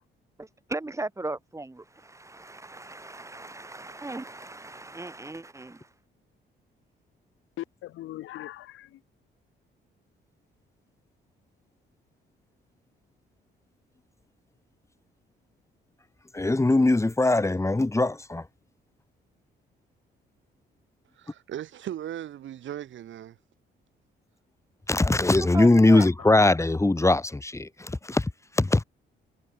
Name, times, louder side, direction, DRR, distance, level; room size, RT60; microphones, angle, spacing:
voice 1, 0.4-5.9 25.5-26.1, right 2 dB, 15° right, 3.3 m, -37 dB
voice 2, 7.6-9.0 25.9-26.5, left 15 dB, 85° left, 2.9 m, -40 dB
voice 3, 16.3-18.4 24.9-28.3 28.6-28.8, left 2 dB, 15° left, 2.0 m, -21 dB
voice 4, 21.2-23.4, right 11 dB, 70° right, 3.9 m, -37 dB
cardioid pair, 90°, 20 cm